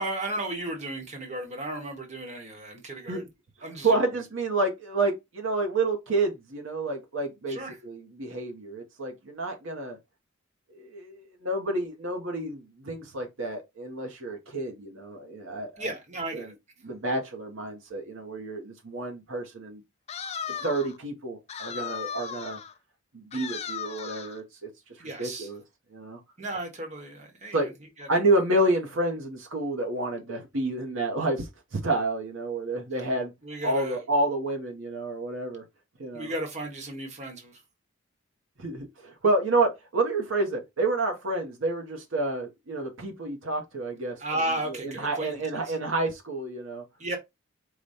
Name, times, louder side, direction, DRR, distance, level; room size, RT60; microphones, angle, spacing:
voice 1, 0.0-3.2 3.6-4.0 7.5-7.8 15.8-16.5 25.0-25.5 26.4-27.7 28.0-28.1 33.4-34.0 36.1-37.6 44.2-45.7 47.0-47.2, right 1 dB, 35° right, 1.1 m, -34 dB
voice 2, 3.8-10.0 10.7-15.9 16.3-16.5 16.8-19.8 20.5-22.6 23.1-24.7 25.0-25.6 25.9-26.2 27.5-27.7 28.1-33.3 33.6-35.6 36.0-36.3 38.6-44.2 44.7-46.8, right 2 dB, 65° right, 0.9 m, -29 dB
sound 1, 20.1-21.0 21.5-22.7 23.3-24.4, left 7 dB, 30° left, 0.4 m, -36 dB
4.9 x 2.2 x 4.0 m
head